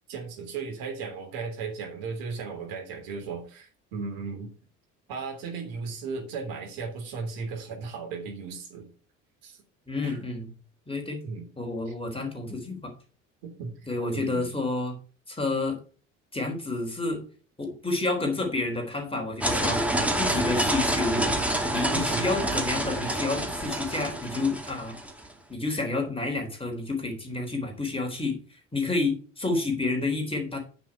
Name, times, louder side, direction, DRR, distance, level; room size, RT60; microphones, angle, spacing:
voice 1, 0.1-4.5 5.1-8.9 9.4-9.6 10.0-10.2 11.2-11.5 13.4-13.7 14.0-14.5 21.9-22.2, right 5 dB, 60° right, 2 dB, 3.3 m, -36 dB
voice 2, 9.9-10.5 10.9-11.2 11.6-12.9 13.9-15.0 15.3-15.8 16.3-17.2 17.6-19.8 20.2-21.3 21.7-25.0 25.5-28.4 28.7-30.6, left 3 dB, 15° left, 3 dB, 3.7 m, -29 dB
sound 1, 19.4-25.2, right 1 dB, 5° right, 2.3 m, -27 dB
9.6 x 6.1 x 4.7 m, 0.38 s
figure-of-eight pair, 55°, 40 cm